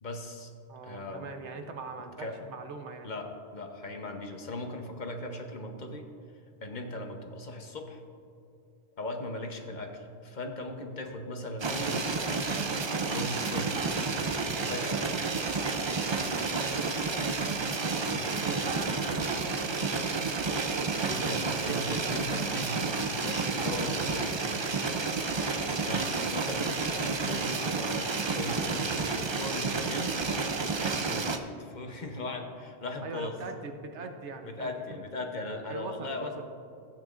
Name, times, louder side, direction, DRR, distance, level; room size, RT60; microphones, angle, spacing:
voice 1, 0.0-0.5 0.8-1.4 2.2-2.4 3.0-6.0 6.6-8.0 9.0-12.1 13.1-13.8 14.4-15.1 18.1-18.4 21.1-24.4 25.6-26.7 27.0-30.2 30.9-31.3 31.6-33.3 34.4-36.3, left 2 dB, 45° left, 3 dB, 1.0 m, -38 dB
voice 2, 0.7-3.1 14.9-15.0 16.6-16.8 18.3-21.3 21.7-21.8 22.1-22.5 33.0-35.0 35.7-36.5, right 3 dB, 80° right, 5 dB, 1.1 m, -41 dB
sound 1, 11.6-31.4, right 4 dB, 45° right, 0.3 m, -30 dB
15.5 x 8.8 x 2.5 m, 2.6 s
omnidirectional pair, 1.2 m